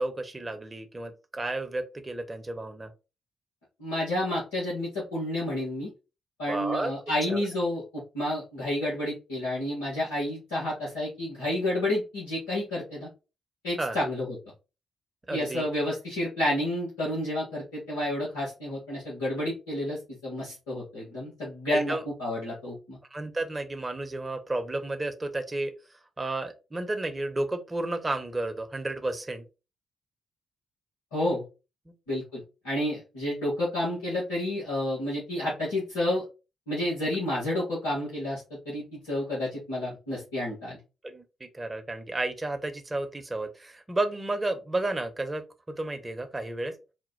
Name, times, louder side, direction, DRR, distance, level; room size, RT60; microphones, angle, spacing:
voice 1, 0.0-2.9 6.5-6.9 7.3-7.4 13.8-14.0 15.3-15.6 21.7-22.0 23.1-29.4 41.0-46.7, right 2 dB, 25° right, 6 dB, 1.0 m, -32 dB
voice 2, 3.8-5.9 6.4-13.1 13.6-14.3 15.3-23.0 31.1-31.4 32.1-36.2 36.7-40.8, left 1 dB, 85° left, -8 dB, 1.5 m, -30 dB
4.3 x 2.4 x 3.9 m, 0.29 s
hypercardioid pair, 40°, 0 cm